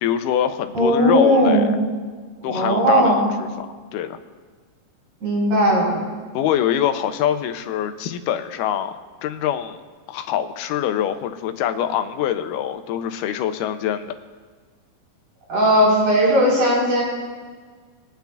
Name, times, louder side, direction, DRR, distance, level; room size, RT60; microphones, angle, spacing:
voice 1, 0.0-1.8 2.4-3.7 3.9-4.2 6.3-9.8 10.1-14.1, left 10 dB, 90° left, 8 dB, 2.2 m, -24 dB
voice 2, 0.7-1.7 2.4-3.3 5.2-6.0 15.5-17.0, equal, 65° right, -6 dB, 5.3 m, -17 dB
22.0 x 9.2 x 2.3 m, 1.5 s
omnidirectional pair, 3.8 m